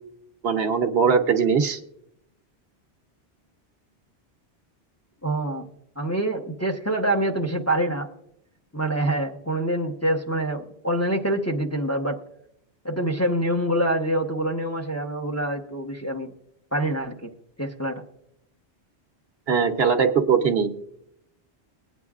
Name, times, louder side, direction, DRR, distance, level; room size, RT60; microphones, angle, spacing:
voice 1, 0.4-1.8 19.5-20.7, right 6 dB, 65° right, 7 dB, 1.0 m, -20 dB
voice 2, 5.2-5.7 6.0-8.1 8.7-12.2 12.8-16.3 16.7-17.3 17.6-18.0, right 1 dB, 15° left, 1 dB, 0.9 m, -25 dB
21.5 x 9.2 x 2.4 m, 0.77 s
omnidirectional pair, 1.1 m